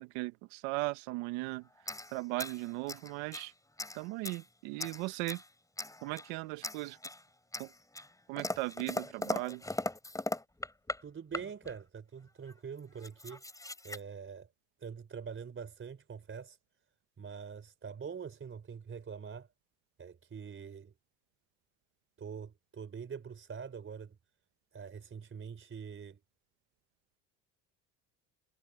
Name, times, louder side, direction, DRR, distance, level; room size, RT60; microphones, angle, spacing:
voice 1, 0.0-1.7 2.1-3.5 3.9-5.4 6.0-7.0 7.6-7.7 8.3-9.6, right 22 dB, 85° right, 1.5 m, -37 dB
sound 1, 1.8-3.5 3.8-4.4 4.8-5.5 5.8-6.3 6.6-7.2 7.5-11.0 11.3-11.8 12.5-12.6 12.8-14.0, left 2 dB, 10° left, 4.3 m, -39 dB
voice 2, 11.0-13.4 13.8-14.5 14.8-16.6 17.2-19.5 20.0-20.9 22.2-24.2 24.7-26.2, right 6 dB, 35° right, 4.4 m, -44 dB
supercardioid pair, 90°, 37 cm